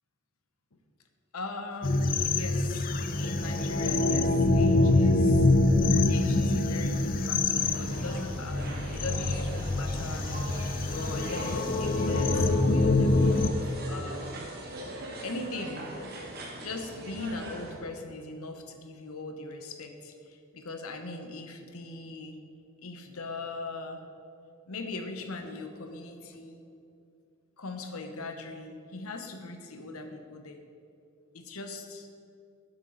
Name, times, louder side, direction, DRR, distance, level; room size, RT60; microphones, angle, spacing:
voice 1, 1.3-2.9 3.2-5.5 6.1-10.3 10.9-14.4 15.2-15.9 16.6-22.4 22.8-24.0 24.7-26.6 27.6-30.6 31.3-32.1, left 2 dB, 85° left, 5 dB, 1.0 m, -40 dB
sound 1, 1.8-13.5, left 2 dB, 40° left, 0.5 m, -25 dB
sound 2, 7.6-17.8, right 1 dB, 45° right, 1.5 m, -41 dB
11.5 x 7.4 x 4.0 m, 2.5 s
head